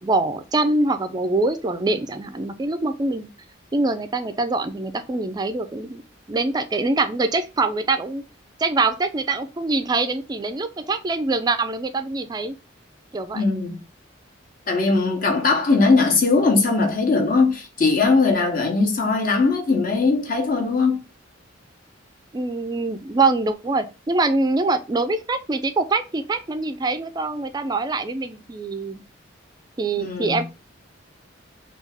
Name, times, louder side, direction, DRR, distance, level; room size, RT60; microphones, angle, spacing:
voice 1, 0.0-3.3 3.7-6.0 6.3-8.2 8.6-12.6 13.1-13.4 22.3-29.0 29.8-30.5, right 3 dB, 20° right, 0.3 m, -24 dB
voice 2, 13.3-13.8 14.7-21.0 30.0-30.4, left 3 dB, 45° left, 0.9 m, -20 dB
3.4 x 2.3 x 3.4 m
head